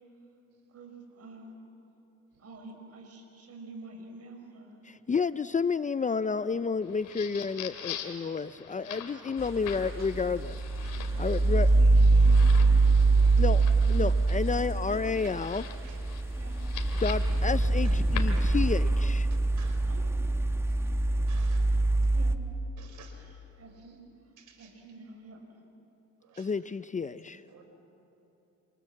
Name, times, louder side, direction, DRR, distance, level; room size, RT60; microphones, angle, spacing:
voice 1, 0.7-1.6 2.4-4.8 8.8-9.1 10.9-12.9 13.8-14.0 14.9-15.0 16.3-16.5 17.4-17.5 19.9-20.0 20.5-20.6 22.1-22.4 23.1-24.0 24.6-25.4, right 2 dB, 55° right, 3 dB, 6.2 m, -48 dB
voice 2, 4.8-10.6 11.2-11.7 13.4-13.6 13.9-15.7 17.0-19.3 26.4-27.4, left 5 dB, 25° left, 14 dB, 0.5 m, -30 dB
sound 1, 6.8-18.8, left 8 dB, 85° left, 2.8 m, -44 dB
sound 2, 9.4-22.4, right 3 dB, 10° right, 1.3 m, -24 dB
voice 3, 21.3-21.6 22.8-23.1 24.5-24.7 26.3-26.4 27.5-27.6, right 7 dB, 75° right, 5 dB, 4.8 m, -52 dB
27.5 x 27.5 x 7.5 m, 3.0 s
cardioid pair, 90°, 30 cm